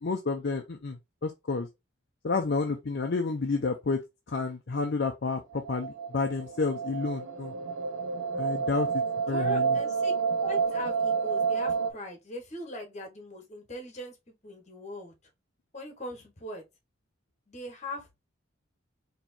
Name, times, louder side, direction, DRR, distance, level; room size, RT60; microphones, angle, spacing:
voice 1, 0.0-1.7 2.2-4.0 4.3-7.5 8.3-8.9 9.3-9.8, left 4 dB, 50° left, 0.5 m, -30 dB
sound 1, 5.5-11.9, right 5 dB, 70° right, 0.6 m, -29 dB
voice 2, 9.3-10.1 10.4-14.2 14.4-15.1 15.7-16.6 17.5-18.2, left 1 dB, 35° left, 1.3 m, -40 dB
4.3 x 3.0 x 2.7 m
head